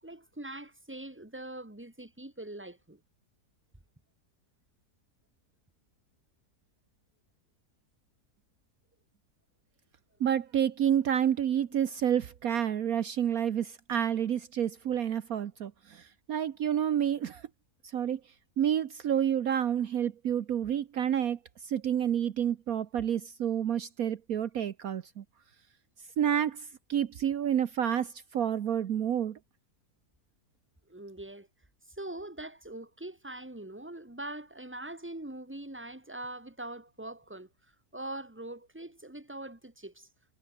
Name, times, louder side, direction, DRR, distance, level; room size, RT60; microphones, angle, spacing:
voice 1, 0.0-3.0 30.9-31.5 31.9-37.5 37.9-40.1, right 1 dB, 5° right, 2.5 m, -42 dB
voice 2, 10.2-17.4 17.9-18.2 18.6-21.4 21.6-25.2 26.2-29.4, right 9 dB, 65° right, 1.4 m, -29 dB
omnidirectional pair, 1.7 m